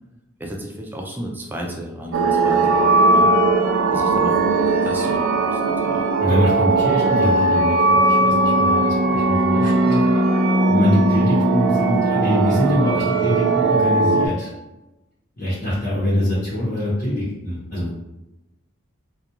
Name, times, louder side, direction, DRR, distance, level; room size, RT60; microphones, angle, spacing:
voice 1, 0.4-3.3 3.9-6.1 6.8-7.1 11.9-12.0, equal, 10° right, 0 dB, 0.3 m, -33 dB
sound 1, 2.1-14.3, right 2 dB, 85° right, 0.3 m, -18 dB
voice 2, 6.2-10.0 10.7-14.5 15.4-18.0, left 1 dB, 50° left, -10 dB, 0.9 m, -23 dB
2.4 x 2.2 x 2.9 m, 0.97 s
head